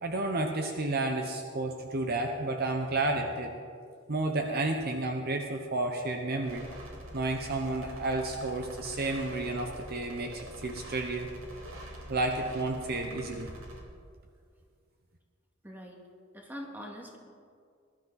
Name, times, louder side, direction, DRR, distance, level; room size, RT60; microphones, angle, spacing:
voice 1, 0.0-3.5 4.1-6.7 7.1-11.3 12.1-13.5, right 2 dB, 50° right, 4 dB, 1.0 m, -31 dB
sound 1, 6.4-13.8, right 1 dB, 80° right, 2.4 m, -45 dB
voice 2, 15.6-16.0 16.3-17.2, equal, 10° right, -1 dB, 2.1 m, -43 dB
20.5 x 12.0 x 4.1 m, 2.2 s
head